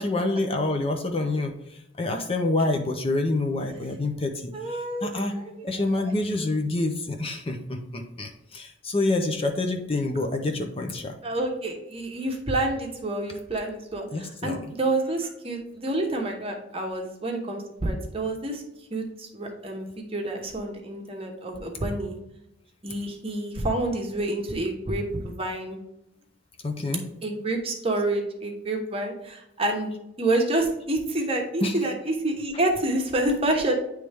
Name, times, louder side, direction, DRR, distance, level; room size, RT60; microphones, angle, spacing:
voice 1, 0.0-1.5 2.0-4.5 5.0-5.3 5.6-11.1 14.1-14.6 26.6-27.1 31.6-31.7, left 2 dB, 30° left, 4 dB, 0.6 m, -27 dB
voice 2, 4.5-6.1 11.2-18.6 18.9-22.2 22.8-25.8 27.2-29.9 30.2-33.7, right 2 dB, 30° right, 2 dB, 1.0 m, -28 dB
9.2 x 3.2 x 3.4 m, 0.85 s
head